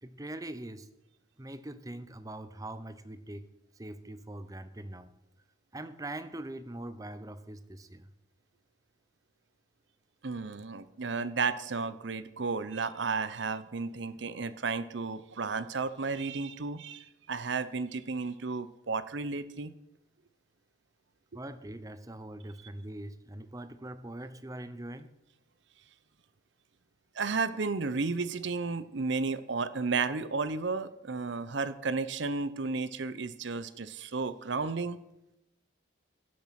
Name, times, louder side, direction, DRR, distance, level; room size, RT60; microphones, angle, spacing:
voice 1, 0.0-0.9 1.4-3.5 3.7-5.1 5.7-8.1 21.3-25.2, right 1 dB, 15° right, 12 dB, 0.7 m, -42 dB
voice 2, 10.2-19.7 27.2-35.0, right 4 dB, 65° right, 14 dB, 0.7 m, -33 dB
16.0 x 7.3 x 5.9 m, 0.87 s
head